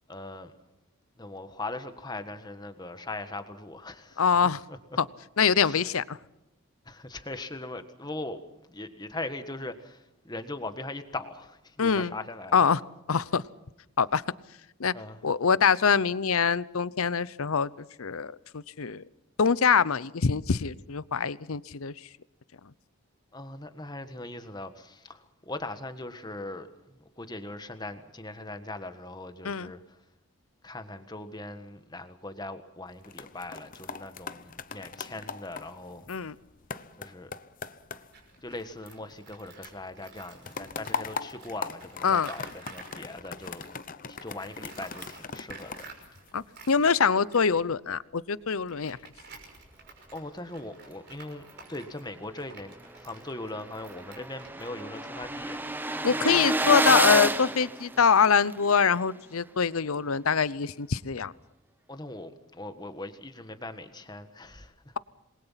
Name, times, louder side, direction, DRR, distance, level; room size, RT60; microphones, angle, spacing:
voice 1, 0.1-0.5 1.2-4.8 5.6-5.9 6.8-8.4 8.7-12.6 14.9-15.2 23.3-30.0 30.6-36.1 37.0-37.3 38.4-43.7 44.1-46.0 50.1-55.7 61.9-65.0, left 2 dB, 20° left, 1.5 m, -40 dB
voice 2, 4.2-4.6 5.0-5.1 5.4-6.2 11.8-12.1 12.5-12.8 13.1-13.4 14.0-14.2 14.8-14.9 15.2-17.7 18.0-19.0 19.4-21.9 29.4-29.7 36.1-36.3 42.0-42.3 46.3-49.0 56.0-61.3, left 6 dB, 75° left, 0.7 m, -24 dB
sound 1, 32.9-39.4 39.6-46.8 47.3-47.6, left 5 dB, 40° left, 0.8 m, -40 dB
Tools, 38.1-43.8 44.2-55.6, right 4 dB, 50° right, 5.8 m, -51 dB
sound 2, 53.0-53.1 53.4-53.5 53.6-58.5, right 2 dB, 10° right, 0.8 m, -29 dB
27.5 x 21.5 x 5.8 m
head